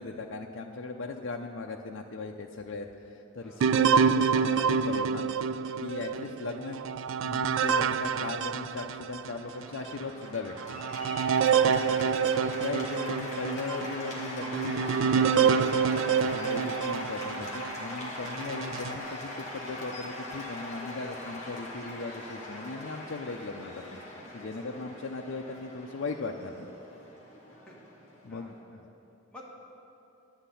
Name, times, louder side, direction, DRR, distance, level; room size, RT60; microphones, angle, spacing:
voice 1, 0.0-5.2 5.8-6.8 7.1-10.5 12.4-15.7 16.2-24.0 24.3-26.7 28.2-28.8, left 3 dB, 60° left, 2 dB, 0.5 m, -38 dB
sound 1, 3.6-9.4 9.9-10.0 10.6-17.8 18.4-19.0, right 6 dB, 65° right, 0.3 m, -27 dB
Cheering / Applause, 9.3-28.6, left 1 dB, 35° left, 1.8 m, -41 dB
voice 2, 27.5-27.8 28.3-28.8 29.3-29.5, left 1 dB, 5° left, -5 dB, 1.5 m, -52 dB
11.5 x 5.9 x 8.2 m, 2.8 s
head